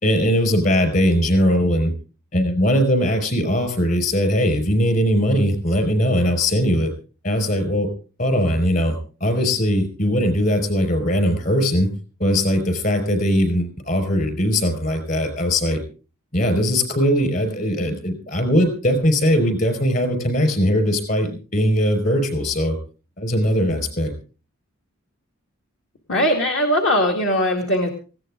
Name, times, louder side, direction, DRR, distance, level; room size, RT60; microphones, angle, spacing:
voice 1, 0.0-1.9 2.3-6.9 7.2-7.9 8.2-11.9 12.2-15.8 16.3-22.8 23.2-24.1, equal, 40° left, 8 dB, 4.9 m, -20 dB
voice 2, 26.1-27.9, equal, 60° left, 1 dB, 2.2 m, -20 dB
19.0 x 16.5 x 3.7 m, 0.36 s
head